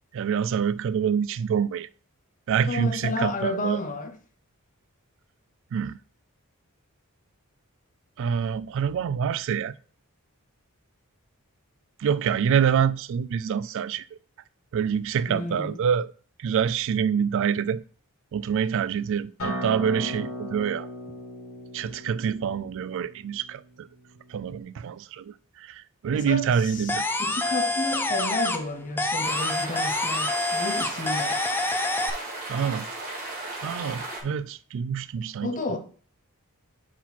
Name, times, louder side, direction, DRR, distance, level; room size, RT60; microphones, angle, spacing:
voice 1, 0.1-1.9 2.5-3.8 5.7-6.0 8.2-9.7 12.0-14.2 14.7-16.1 16.4-17.8 18.3-20.9 21.7-23.9 24.3-27.0 32.5-32.9 33.6-35.8, right 7 dB, 60° right, 0.3 m, -26 dB
voice 2, 2.7-4.1 15.3-15.8 26.1-31.4 35.4-35.8, left 2 dB, 35° left, 0.8 m, -31 dB
Acoustic guitar, 19.4-24.6, equal, 85° left, 2.9 m, -37 dB
sound 1, 26.9-28.7 29.0-32.1, left 2 dB, 10° left, 0.5 m, -26 dB
sound 2, 29.2-34.2, right 2 dB, 40° right, 2.2 m, -35 dB
6.1 x 4.3 x 4.2 m
head